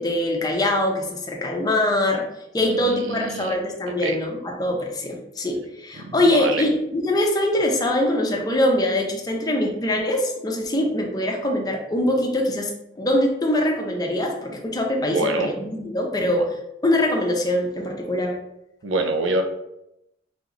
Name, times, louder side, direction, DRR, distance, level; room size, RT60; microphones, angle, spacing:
voice 1, 0.0-2.3 2.5-16.5 16.8-18.4, left 1 dB, 20° left, 1 dB, 0.6 m, -23 dB
voice 2, 2.6-3.6 3.9-4.2 6.0-6.7 15.1-15.5 16.2-16.4 18.8-19.4, right 2 dB, 85° right, 5 dB, 0.5 m, -26 dB
3.4 x 3.0 x 3.8 m, 0.85 s
head